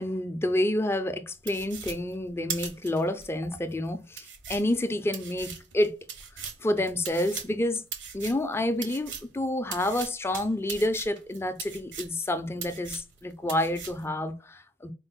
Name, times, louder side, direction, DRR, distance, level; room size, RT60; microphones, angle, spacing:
voice 1, 0.0-5.9 6.4-7.8 8.1-14.9, left 1 dB, 15° left, 0.4 m, -29 dB
sound 1, 1.5-3.3 3.7-3.8 4.1-9.4 9.7-12.3 12.6-13.2 13.5-14.1, right 7 dB, 75° right, 0.8 m, -39 dB
4.5 x 2.0 x 3.9 m
head